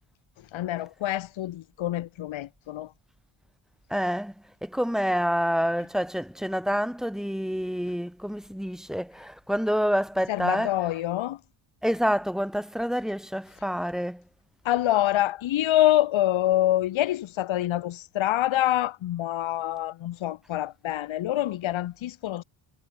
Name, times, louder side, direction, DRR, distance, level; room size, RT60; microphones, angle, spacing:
voice 1, 0.5-2.9 10.3-11.4 14.6-22.4, left 13 dB, 75° left, 2.9 m, -26 dB
voice 2, 3.9-4.3 4.6-10.7 11.8-14.2, equal, ahead, 5.1 m, -27 dB
cardioid pair, 115°, 47 cm